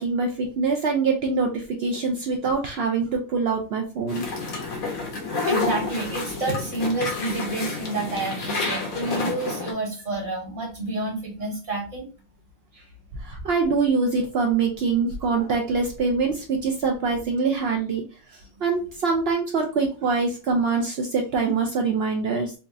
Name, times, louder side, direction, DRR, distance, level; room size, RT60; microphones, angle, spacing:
voice 1, 0.0-4.3 13.2-22.5, right 4 dB, 65° right, 2 dB, 0.6 m, -24 dB
sound 1, 4.1-9.7, left 3 dB, 80° left, 1.3 m, -29 dB
voice 2, 5.1-12.1, right 2 dB, 50° right, -4 dB, 1.6 m, -29 dB
4.0 x 2.4 x 2.5 m, 0.36 s
omnidirectional pair, 1.5 m